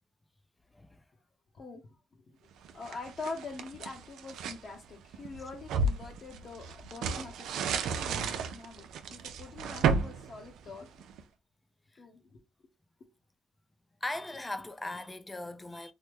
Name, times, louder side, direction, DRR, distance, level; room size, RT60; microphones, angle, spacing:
voice 1, 0.7-1.0 11.9-12.0 14.0-15.9, left 2 dB, 15° left, 0.4 m, -39 dB
sound 1, 2.6-4.6 5.1-11.2, right 4 dB, 80° right, 0.4 m, -33 dB
voice 2, 2.7-11.1 11.9-12.4 13.0-13.1, left 3 dB, 50° left, 0.8 m, -44 dB
3.2 x 2.1 x 3.4 m
cardioid pair, 90°, 0 cm